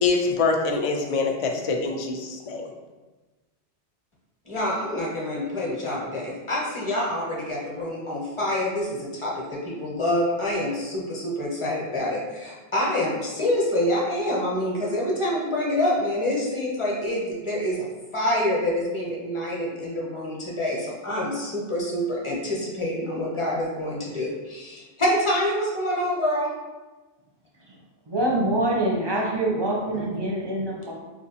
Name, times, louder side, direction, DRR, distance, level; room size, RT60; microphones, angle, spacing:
voice 1, 0.0-2.6, left 4 dB, 65° left, 2 dB, 0.3 m, -24 dB
voice 2, 4.5-17.9 18.1-26.5 29.9-30.0, left 1 dB, 30° left, -3 dB, 0.7 m, -26 dB
voice 3, 28.1-30.9, right 1 dB, 35° right, -3 dB, 0.5 m, -25 dB
4.5 x 2.5 x 2.7 m, 1.2 s
omnidirectional pair, 1.1 m